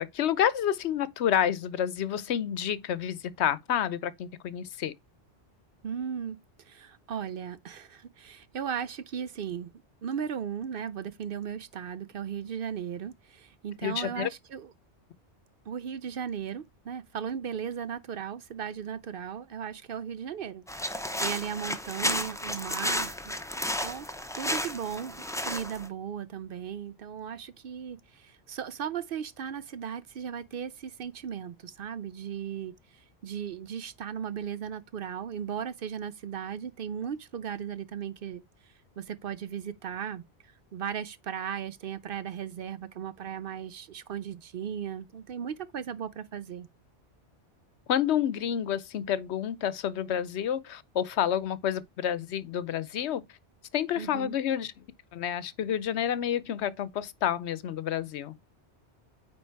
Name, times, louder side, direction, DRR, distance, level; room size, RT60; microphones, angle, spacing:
voice 1, 0.0-4.9 13.8-14.3 47.9-53.2 53.7-54.8 55.1-58.3, left 9 dB, 75° left, 0.9 m, -29 dB
voice 2, 5.8-6.4 6.7-9.7 10.0-14.7 15.7-23.4 23.8-24.1 24.3-38.4 39.0-40.2 40.7-46.7 54.0-54.3, right 8 dB, 60° right, 0.7 m, -36 dB
sound 1, 20.7-25.9, left 1 dB, 5° left, 0.6 m, -32 dB
9.2 x 3.4 x 4.5 m
omnidirectional pair, 1.2 m